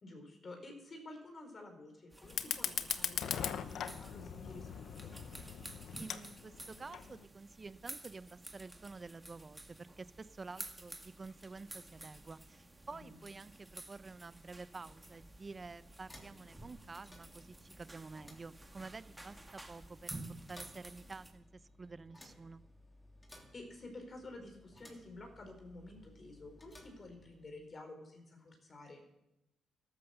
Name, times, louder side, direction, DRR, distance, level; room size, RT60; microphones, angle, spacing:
voice 1, 0.0-5.2 13.0-13.2 23.5-29.0, left 2 dB, 35° left, 4 dB, 4.3 m, -51 dB
sound 1, 2.1-21.3, right 2 dB, 10° right, 2.2 m, -52 dB
Fire, 2.2-7.2, left 8 dB, 70° left, 0.9 m, -40 dB
voice 2, 6.0-21.5 21.8-22.6, right 4 dB, 30° right, 15 dB, 0.6 m, -50 dB
sound 2, 14.5-27.8, left 1 dB, 15° left, 3.0 m, -60 dB
13.5 x 11.5 x 6.8 m, 0.91 s
cardioid pair, 90°, 0 cm